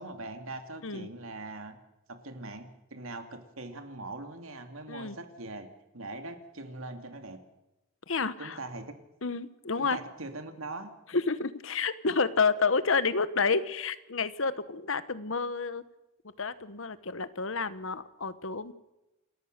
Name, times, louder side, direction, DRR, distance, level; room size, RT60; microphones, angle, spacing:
voice 1, 0.0-1.8 2.1-5.7 5.9-7.4 8.4-8.9 9.8-10.9, right 2 dB, 80° right, 7 dB, 2.5 m, -41 dB
voice 2, 8.1-8.6 9.2-10.0 11.1-15.8 16.4-18.7, left 4 dB, 70° left, 14 dB, 1.1 m, -29 dB
28.0 x 14.0 x 6.6 m, 0.97 s
head